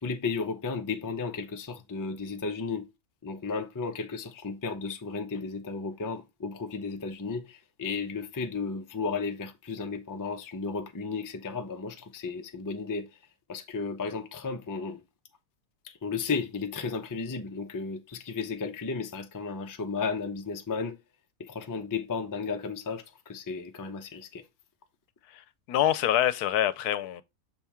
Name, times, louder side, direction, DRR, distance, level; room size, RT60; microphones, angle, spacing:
voice 1, 0.0-2.9 3.2-13.1 13.5-15.0 15.8-21.0 21.4-24.4, left 4 dB, 25° left, 0.4 m, -34 dB
voice 2, 25.7-27.2, left 11 dB, 85° left, 1.1 m, -25 dB
6.7 x 3.6 x 4.3 m
omnidirectional pair, 1.6 m